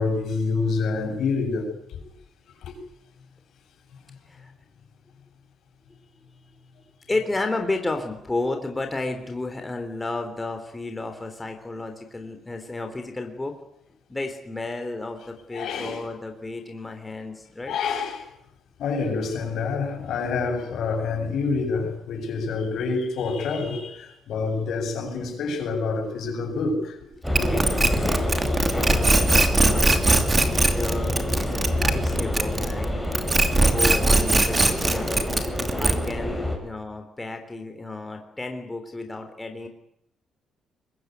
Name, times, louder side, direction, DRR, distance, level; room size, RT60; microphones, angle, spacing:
voice 1, 0.0-2.0 2.6-2.8 15.5-16.0 17.7-18.3 18.8-27.0 27.4-27.5, left 4 dB, 75° left, 7.9 m, -27 dB
voice 2, 7.1-13.5 14.1-17.8 27.5-27.6 27.9-33.0 33.6-35.2 35.8-39.7, left 2 dB, 15° left, 3.5 m, -32 dB
sound 1, 27.2-36.6, left 1 dB, ahead, 7.1 m, -26 dB
sound 2, 27.3-32.8 33.1-36.2, right 2 dB, 20° right, 2.9 m, -20 dB
24.0 x 21.5 x 9.5 m
cardioid pair, 115°, 0 cm